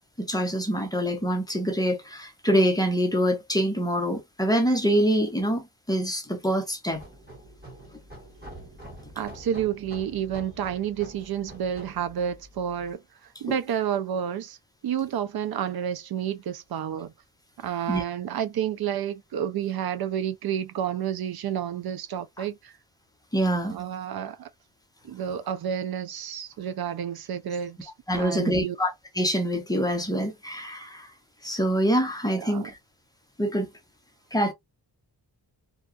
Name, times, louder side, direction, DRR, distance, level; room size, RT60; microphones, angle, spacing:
voice 1, 0.2-7.0 17.9-18.0 23.3-23.8 28.1-31.1 31.4-32.8 33.4-33.7 34.3-34.5, equal, 10° left, 0.7 m, -25 dB
sound 1, 6.9-12.9, right 1 dB, 25° right, 1.2 m, -46 dB
voice 2, 9.2-13.0 13.4-14.6 14.8-17.1 17.6-22.7 23.6-24.5 25.0-28.8 32.3-32.7, right 9 dB, 70° right, 0.5 m, -30 dB
2.8 x 2.3 x 2.4 m
wide cardioid pair, 155°, 38 cm